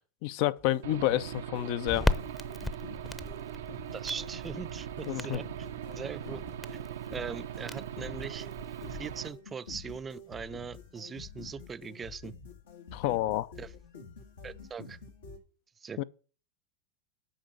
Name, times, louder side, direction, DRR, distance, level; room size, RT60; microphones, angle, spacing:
voice 1, 0.2-2.1 5.1-5.4 12.9-13.5 16.0-16.1, left 15 dB, 60° left, 0.5 m, -29 dB
sound 1, 0.6-15.4, left 4 dB, 90° left, 1.9 m, -48 dB
Aircraft / Engine, 0.8-9.3, right 10 dB, 80° right, 0.6 m, -41 dB
Crackle, 1.9-9.2, left 2 dB, 10° left, 0.7 m, -37 dB
voice 2, 3.9-5.5 6.0-6.4 6.7-6.8 7.1-8.5 8.9-12.3 13.6-13.7 14.4-15.0 15.8-16.0, right 6 dB, 25° right, 0.4 m, -40 dB
8.9 x 5.9 x 6.4 m
hypercardioid pair, 105°, 0 cm